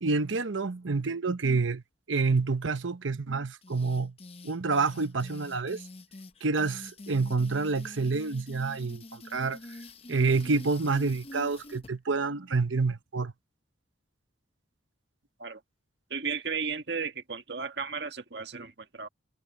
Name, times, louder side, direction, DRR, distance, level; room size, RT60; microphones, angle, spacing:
voice 1, 0.0-4.1 4.4-5.8 6.4-9.6 10.1-13.3, right 4 dB, 85° right, 0.9 m, -28 dB
sound 1, 3.6-11.9, left 2 dB, 30° left, 0.8 m, -46 dB
voice 2, 16.1-19.1, right 5 dB, 60° right, 1.7 m, -34 dB
head